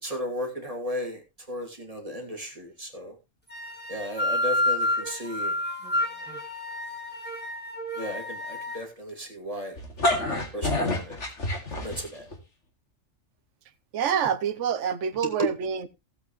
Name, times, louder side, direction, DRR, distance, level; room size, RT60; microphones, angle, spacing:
voice 1, 0.0-3.1 3.9-5.5 8.0-9.8 10.0-10.2 10.5-11.2 11.8-12.3 15.4-15.5, left 1 dB, 25° right, 2.6 m, -34 dB
sound 1, 3.5-8.8, left 1 dB, 5° left, 2.9 m, -29 dB
sound 2, 9.8-12.4, left 2 dB, 65° left, 2.6 m, -27 dB
voice 2, 13.9-15.9, right 8 dB, 70° right, 1.2 m, -27 dB
15.5 x 8.2 x 3.1 m
omnidirectional pair, 1.3 m